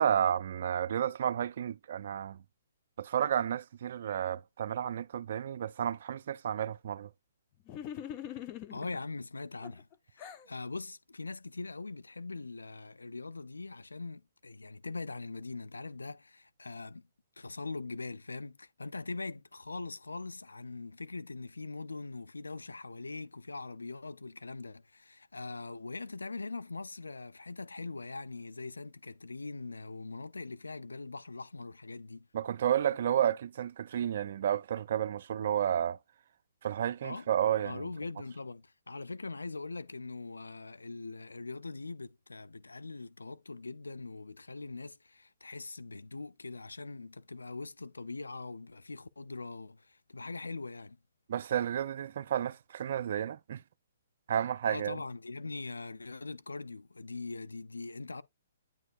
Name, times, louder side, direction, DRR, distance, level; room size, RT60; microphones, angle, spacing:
voice 1, 0.0-2.4 3.0-7.1 32.3-36.0 36.6-37.8 51.3-53.6 54.3-55.0, right 9 dB, 55° right, 0.4 m, -31 dB
sound 1, 7.7-9.0 9.6-10.5, left 10 dB, 30° left, 0.7 m, -42 dB
voice 2, 8.7-17.1 17.4-32.3 37.0-37.3 37.6-51.0 54.7-58.2, left 3 dB, 90° left, 0.5 m, -42 dB
9.0 x 4.4 x 2.6 m
hypercardioid pair, 135°, 0 cm